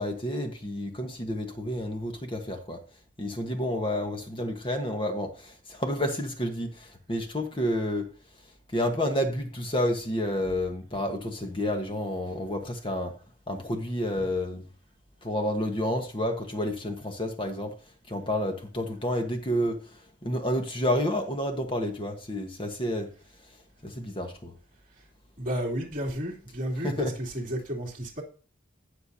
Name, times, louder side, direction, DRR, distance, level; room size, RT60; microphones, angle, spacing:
voice 1, 0.0-2.8 3.2-8.1 8.7-13.1 13.5-14.6 15.2-17.8 18.1-23.1 23.4-23.6 23.8-24.5 26.8-27.1, left 1 dB, 25° left, 1.2 m, -30 dB
voice 2, 25.4-28.2, equal, 40° right, 2.8 m, -32 dB
18.0 x 6.7 x 2.8 m
head